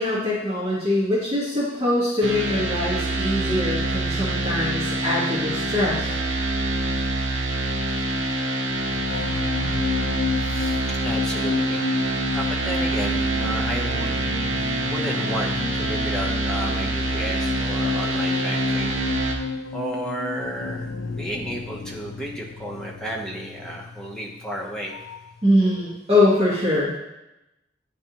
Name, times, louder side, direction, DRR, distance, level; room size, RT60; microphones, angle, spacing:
voice 1, 0.0-6.2 25.4-26.9, left 1 dB, 35° right, -8 dB, 1.5 m, -23 dB
sound 1, 2.2-19.3, right 1 dB, 85° right, 0.9 m, -25 dB
sound 2, 8.7-25.4 25.6-26.0, left 4 dB, 65° left, 0.4 m, -32 dB
voice 2, 10.4-11.8 12.3-19.0 19.7-24.9, equal, 5° left, -2 dB, 0.9 m, -33 dB
9.8 x 3.4 x 2.9 m, 0.94 s
head